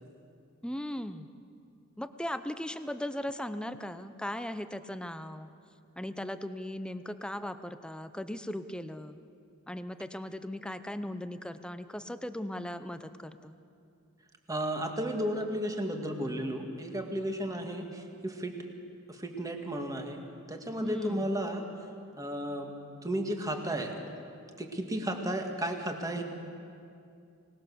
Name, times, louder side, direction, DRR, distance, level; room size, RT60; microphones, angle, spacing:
voice 1, 0.6-1.3 2.0-5.5 6.0-9.2 9.7-13.6 20.8-21.2, left 1 dB, 5° left, 11 dB, 0.7 m, -38 dB
voice 2, 14.5-18.6 19.1-20.2 20.5-21.7 22.2-22.7 23.0-24.0 24.6-26.2, right 1 dB, 15° right, 3 dB, 1.9 m, -33 dB
24.5 x 19.0 x 6.9 m, 2.5 s
head